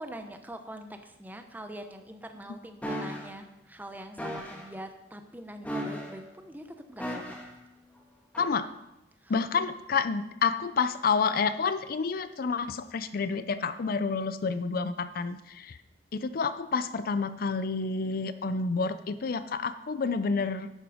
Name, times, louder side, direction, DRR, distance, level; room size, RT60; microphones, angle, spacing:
voice 1, 0.0-7.4 9.2-9.7, right 1 dB, 10° right, 7 dB, 0.9 m, -44 dB
sound 1, 2.8-3.3 4.2-4.7 5.6-6.3 7.0-7.6 8.3-8.5, equal, 10° left, 1.7 m, -35 dB
voice 2, 9.3-15.8 16.1-20.7, left 5 dB, 55° left, 12 dB, 0.5 m, -29 dB
11.0 x 8.7 x 5.0 m, 0.93 s
head